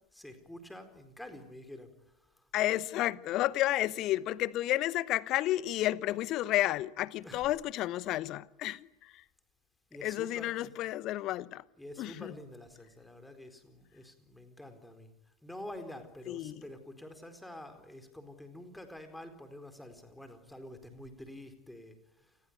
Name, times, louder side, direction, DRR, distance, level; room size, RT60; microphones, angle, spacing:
voice 1, 0.1-1.9 7.2-7.5 9.9-10.7 11.8-15.1 15.4-22.3, left 1 dB, 5° left, 4.3 m, -48 dB
voice 2, 2.5-9.2 10.0-11.6 12.0-12.3 16.3-16.6, left 15 dB, 35° left, 1.0 m, -31 dB
29.0 x 20.5 x 9.5 m
figure-of-eight pair, 90°, 0 cm